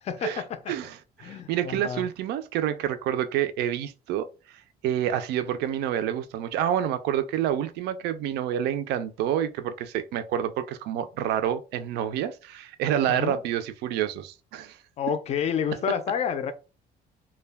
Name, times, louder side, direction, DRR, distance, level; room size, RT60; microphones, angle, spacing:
voice 1, 0.0-0.7 1.2-2.1 13.1-13.4 15.0-16.5, left 7 dB, 40° left, 0.4 m, -29 dB
voice 2, 0.7-4.3 4.8-14.8, right 10 dB, 80° right, 0.4 m, -28 dB
2.2 x 2.1 x 3.3 m
cardioid pair, 110°, 17 cm